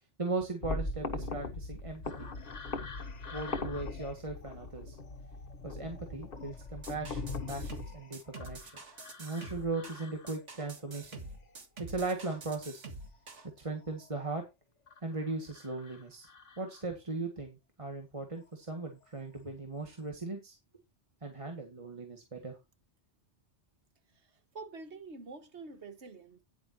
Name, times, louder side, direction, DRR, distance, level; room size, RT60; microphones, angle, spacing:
voice 1, 0.2-2.3 3.3-5.0 5.6-7.2 7.5-8.7 9.2-11.1 11.8-12.8 13.6-14.5 15.0-16.3 16.6-20.6 21.2-22.6, right 3 dB, 25° right, 1.9 m, -38 dB
sound 1, 0.6-7.8, left 3 dB, 50° left, 1.5 m, -39 dB
sound 2, 2.0-12.1 12.3-14.3 14.9-17.1 18.3-18.5 19.0-19.5 19.7-20.0, left 5 dB, 85° left, 1.7 m, -53 dB
sound 3, 6.8-13.5, right 3 dB, 90° right, 2.1 m, -47 dB
voice 2, 24.5-26.4, right 3 dB, 70° right, 1.8 m, -46 dB
10.5 x 9.8 x 2.9 m
omnidirectional pair, 1.2 m